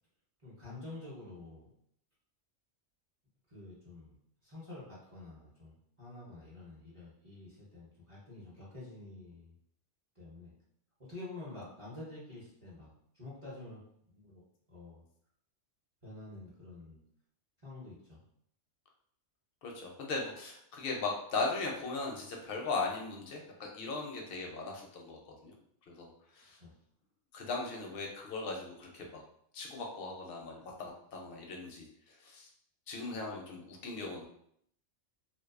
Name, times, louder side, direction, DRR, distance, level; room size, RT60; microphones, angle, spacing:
voice 1, 0.4-1.7 3.5-4.2 4.4-9.6 10.2-10.5 11.0-13.8 14.1-14.4 14.7-15.0 16.0-17.0 17.6-18.2 26.6-26.7, left 2 dB, 35° right, -8 dB, 0.7 m, -48 dB
voice 2, 19.6-25.5 25.9-26.1 26.4-26.6 27.3-29.2 29.5-32.5 32.9-34.3, left 3 dB, 60° left, 0 dB, 0.6 m, -38 dB
2.4 x 2.2 x 2.4 m, 0.69 s
omnidirectional pair, 1.2 m